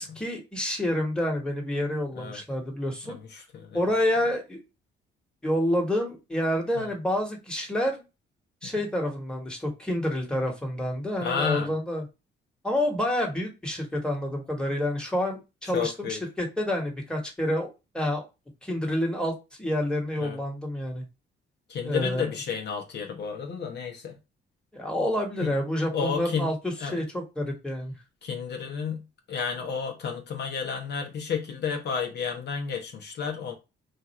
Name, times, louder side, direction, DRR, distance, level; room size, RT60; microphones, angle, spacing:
voice 1, 0.0-3.2 3.7-4.6 5.4-8.0 8.6-12.0 12.6-18.2 18.6-19.3 19.6-21.0 21.8-22.3 24.7-27.9, left 1 dB, 5° left, 1.2 m, -28 dB
voice 2, 3.1-3.8 6.7-6.9 8.6-8.7 11.2-11.7 15.7-16.2 20.2-20.4 21.7-24.2 25.4-25.6 25.9-26.5 26.8-27.0 28.2-29.0 29.3-33.5, left 6 dB, 60° left, 0.7 m, -31 dB
2.6 x 2.4 x 4.1 m
cardioid pair, 90°, 20 cm